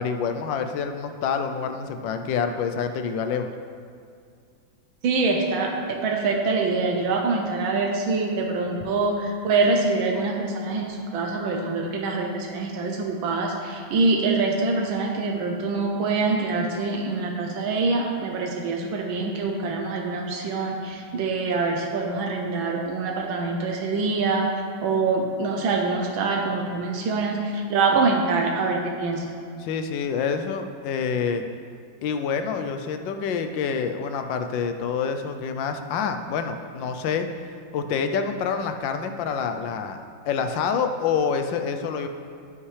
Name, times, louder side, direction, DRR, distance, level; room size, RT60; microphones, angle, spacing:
voice 1, 0.0-3.5 29.6-31.4 32.0-37.3 37.7-42.1, left 6 dB, 75° left, 7 dB, 1.3 m, -27 dB
voice 2, 5.0-24.5 24.8-29.3, right 3 dB, 90° right, 1 dB, 1.6 m, -25 dB
15.5 x 5.7 x 3.3 m, 2.3 s
omnidirectional pair, 2.1 m